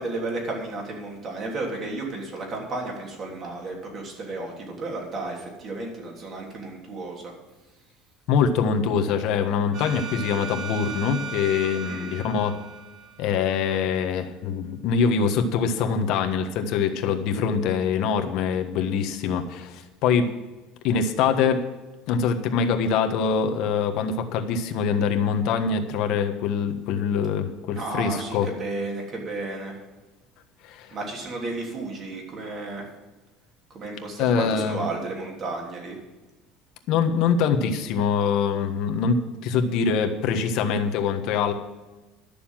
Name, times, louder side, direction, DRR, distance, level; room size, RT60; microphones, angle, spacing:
voice 1, 0.0-7.3 11.9-12.1 27.7-29.8 30.9-32.8 33.7-36.0, right 2 dB, 35° right, 0 dB, 3.3 m, -33 dB
voice 2, 8.3-12.5 13.2-20.3 20.8-21.6 22.1-28.5 30.6-31.0 34.2-34.9 36.9-41.5, left 6 dB, 60° left, 5 dB, 1.4 m, -24 dB
sound 1, 9.7-13.6, right 5 dB, 55° right, 2.8 m, -37 dB
12.0 x 6.9 x 7.4 m, 1.2 s
cardioid pair, 145°, 0 cm